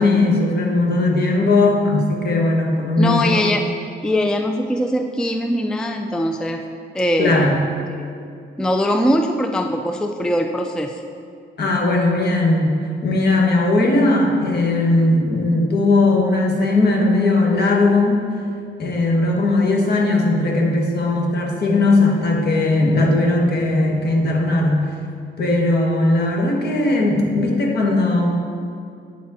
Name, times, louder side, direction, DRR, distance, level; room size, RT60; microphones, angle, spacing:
voice 1, 0.0-3.5 7.2-7.6 11.6-12.7 13.0-18.2 18.8-24.8 25.4-28.3, left 2 dB, 55° left, 0 dB, 1.4 m, -18 dB
voice 2, 3.0-3.6 4.0-6.6 6.9-7.4 8.0-8.1 8.6-10.9, equal, 5° left, 5 dB, 0.4 m, -21 dB
8.2 x 4.9 x 4.1 m, 2.4 s
cardioid pair, 90°, 20 cm